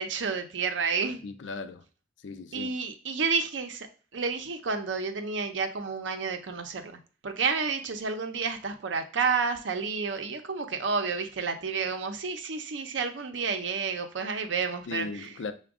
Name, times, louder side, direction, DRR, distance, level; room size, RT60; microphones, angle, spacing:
voice 1, 0.0-1.2 2.5-3.9 4.1-15.3, right 5 dB, 85° right, 0.6 m, -30 dB
voice 2, 1.2-1.8 2.2-2.7 14.9-15.5, left 4 dB, 85° left, 0.5 m, -37 dB
5.9 x 2.2 x 3.5 m
head